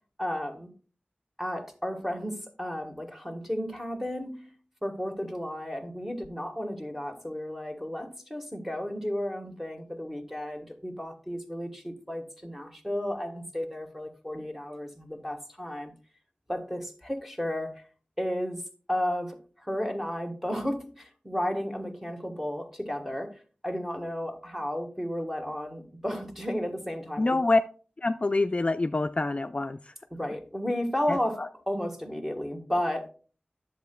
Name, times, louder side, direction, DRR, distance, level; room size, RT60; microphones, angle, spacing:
voice 1, 0.2-0.7 1.4-4.5 4.8-15.9 16.5-17.8 18.2-18.6 18.9-27.4 30.1-33.1, equal, 5° right, 1.4 m, -33 dB
voice 2, 27.2-27.6 28.0-29.9 31.1-31.5, left 2 dB, 35° left, 0.3 m, -26 dB
10.5 x 7.6 x 2.2 m
wide cardioid pair, 65°, 3 cm